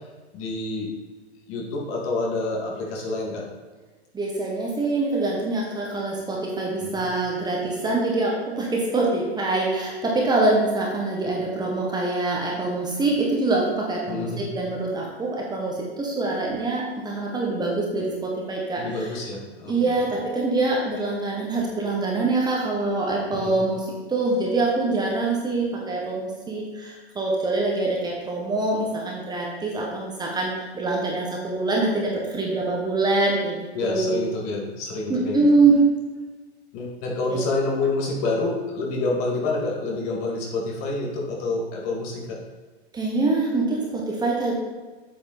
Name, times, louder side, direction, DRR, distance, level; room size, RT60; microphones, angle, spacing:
voice 1, 0.3-0.9 1.5-3.5 6.8-7.1 14.1-14.5 18.8-19.7 23.3-23.6 33.7-35.4 36.7-42.4, left 3 dB, 40° left, -1 dB, 2.5 m, -28 dB
voice 2, 4.1-19.0 19.7-34.2 35.1-35.8 37.3-37.4 42.9-44.5, right 2 dB, 10° right, -2 dB, 1.6 m, -24 dB
8.5 x 7.8 x 4.4 m, 1.3 s
hypercardioid pair, 125°, 33 cm